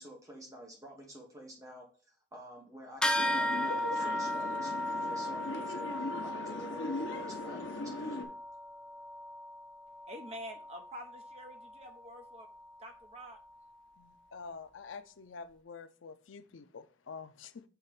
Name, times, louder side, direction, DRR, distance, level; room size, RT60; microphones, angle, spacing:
voice 1, 0.0-1.9 2.3-8.3, equal, 15° right, 1.3 m, -49 dB
sound 1, 3.0-12.8, left 1 dB, 5° left, 0.6 m, -37 dB
sound 2, 3.1-8.2, left 2 dB, 70° left, 1.1 m, -39 dB
voice 2, 10.1-12.5 12.8-13.4, equal, 35° right, 1.0 m, -47 dB
voice 3, 14.0-17.6, left 5 dB, 90° left, 0.6 m, -47 dB
6.9 x 3.2 x 5.9 m
head